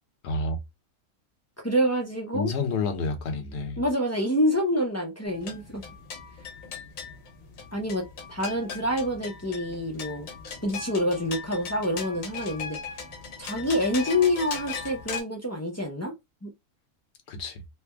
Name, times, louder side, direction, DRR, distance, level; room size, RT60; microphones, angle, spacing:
voice 1, 0.2-0.6 2.3-3.8 17.3-17.6, left 3 dB, 60° left, 1.0 m, -29 dB
voice 2, 1.6-2.5 3.8-5.8 7.7-10.3 10.6-12.8 13.4-16.1 16.4-16.5, left 1 dB, 20° left, 0.4 m, -27 dB
sound 1, 5.3-15.2, left 5 dB, 85° left, 1.3 m, -39 dB
3.3 x 2.1 x 3.3 m
omnidirectional pair, 1.4 m